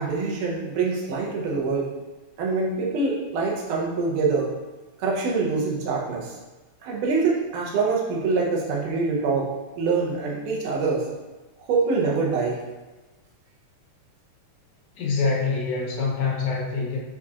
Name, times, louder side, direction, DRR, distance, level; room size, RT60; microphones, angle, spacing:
voice 1, 0.0-1.9 2.4-4.5 5.0-6.4 6.8-11.1 11.6-12.6, right 4 dB, 90° right, -2 dB, 2.4 m, -25 dB
voice 2, 15.0-17.0, left 4 dB, 75° left, -3 dB, 2.0 m, -25 dB
7.0 x 2.8 x 2.4 m, 1.1 s
omnidirectional pair, 3.6 m